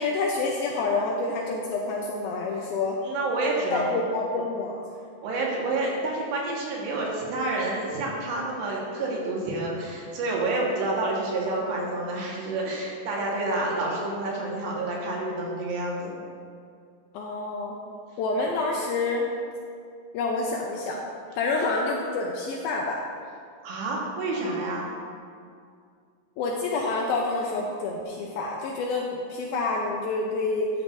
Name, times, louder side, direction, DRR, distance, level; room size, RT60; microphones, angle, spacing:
voice 1, 0.0-3.0 3.7-4.8 17.1-17.8 18.2-19.3 20.1-21.0 21.4-23.0 26.4-30.7, left 3 dB, 80° left, -1 dB, 2.2 m, -28 dB
voice 2, 3.0-4.1 5.2-16.2 18.4-18.5 23.6-24.9, right 2 dB, 75° right, -3 dB, 3.7 m, -29 dB
13.0 x 9.8 x 2.7 m, 2.3 s
omnidirectional pair, 5.0 m